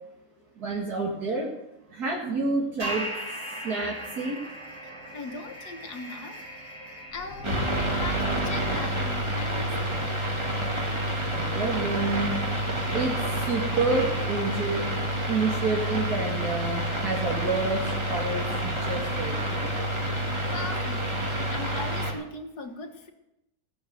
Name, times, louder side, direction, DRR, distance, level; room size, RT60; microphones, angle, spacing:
voice 1, 0.6-1.5 1.9-3.0 3.6-4.4 11.3-13.1 13.5-15.0 15.3-19.7, right 3 dB, 75° right, -3 dB, 2.5 m, -29 dB
sound 1, 1.8-14.8, right 1 dB, 50° right, 4.3 m, -41 dB
voice 2, 5.1-6.6 7.1-9.7 20.5-21.1 21.5-23.1, left 3 dB, 80° left, 5 dB, 2.0 m, -39 dB
sound 2, 7.1-9.9, left 2 dB, 40° left, 1.4 m, -39 dB
sound 3, 7.4-22.1, right 1 dB, 15° right, 2.2 m, -28 dB
17.0 x 7.0 x 8.1 m, 0.89 s
omnidirectional pair, 1.7 m